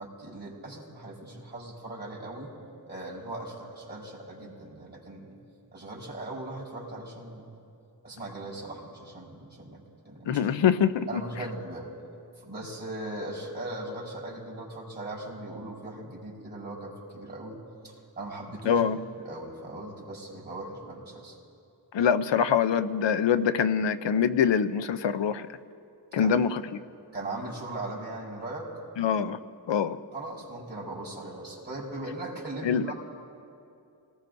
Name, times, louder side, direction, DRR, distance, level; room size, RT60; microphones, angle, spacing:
voice 1, 0.0-2.5 2.9-5.4 5.7-7.4 8.0-10.4 11.1-11.9 12.4-18.8 19.2-21.4 26.2-26.3 27.1-28.7 30.1-32.9, right 2 dB, 20° right, -7 dB, 4.8 m, -39 dB
voice 2, 10.3-11.2 18.7-19.0 21.9-25.5 26.1-26.6 29.0-29.4 29.7-30.0 32.6-32.9, left 7 dB, 85° left, 11 dB, 0.7 m, -24 dB
28.0 x 19.0 x 2.6 m, 2.6 s
wide cardioid pair, 125°, 43 cm